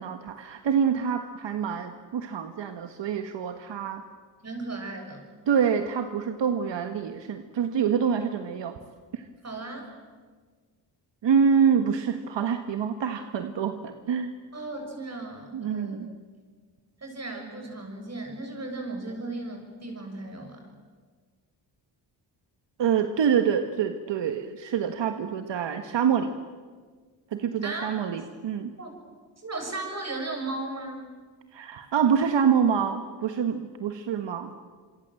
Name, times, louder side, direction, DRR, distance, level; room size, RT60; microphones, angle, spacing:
voice 1, 0.0-4.0 5.5-8.8 9.1-9.2 11.2-14.3 15.5-16.1 22.8-26.3 27.3-28.7 31.5-34.5, right 7 dB, 75° right, 8 dB, 1.5 m, -26 dB
voice 2, 4.4-5.3 9.4-9.9 14.5-16.1 17.0-20.6 27.6-28.0 28.8-28.9 29.4-31.1, right 2 dB, 35° right, 3 dB, 7.1 m, -36 dB
27.0 x 24.5 x 7.8 m, 1.6 s
cardioid pair, 95°, 44 cm